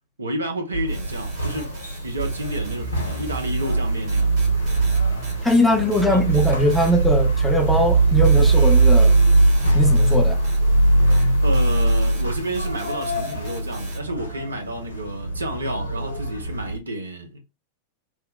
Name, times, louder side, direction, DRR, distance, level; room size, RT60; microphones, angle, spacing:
voice 1, 0.2-1.7 2.0-4.5 6.0-6.3 11.1-17.4, right 1 dB, 75° right, 0.6 m, -30 dB
sound 1, 0.7-16.8, right 2 dB, 80° left, 0.5 m, -20 dB
sound 2, 0.9-14.0, right 2 dB, 45° right, 1.3 m, -44 dB
voice 2, 5.4-9.2 9.7-10.4, left 1 dB, 5° left, 0.6 m, -20 dB
3.0 x 2.0 x 2.2 m
figure-of-eight pair, 90°, 0 cm